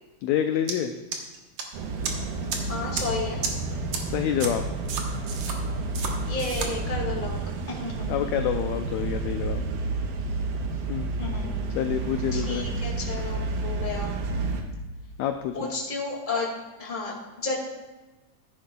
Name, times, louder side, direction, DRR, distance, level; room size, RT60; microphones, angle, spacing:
voice 1, 0.2-0.9 4.0-4.6 8.1-9.6 10.9-11.1 11.7-12.7 15.2-15.7, left 10 dB, 80° left, 7 dB, 1.6 m, -27 dB
sound 1, 0.7-0.8 1.1-1.6 2.0-2.1 2.5-2.6 2.9-3.0 3.4-3.5 3.9-4.0 4.4-4.5 4.9-5.5 5.9-6.1 6.4-6.7, right 6 dB, 60° right, 1.8 m, -30 dB
sound 2, 1.7-14.6, right 3 dB, 85° right, 2.5 m, -30 dB
voice 2, 2.7-3.4 6.3-7.3 7.7-8.1 11.1-11.6 12.3-14.1 15.5-16.5 16.8-17.6, left 3 dB, 20° left, -2 dB, 1.6 m, -32 dB
15.0 x 10.0 x 2.3 m, 1.2 s
omnidirectional pair, 3.6 m